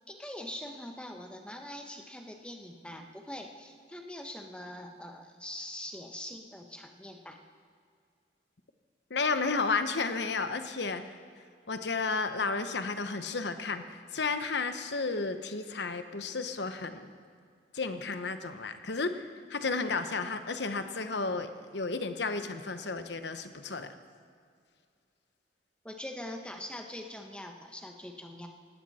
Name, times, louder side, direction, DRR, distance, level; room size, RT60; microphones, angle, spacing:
voice 1, 0.1-7.4 25.8-28.5, left 1 dB, 5° left, 4 dB, 1.2 m, -43 dB
voice 2, 9.1-11.1 11.7-17.1 17.7-19.2 19.5-23.9, left 4 dB, 65° left, 9 dB, 1.0 m, -32 dB
18.0 x 17.5 x 4.3 m, 2.2 s
head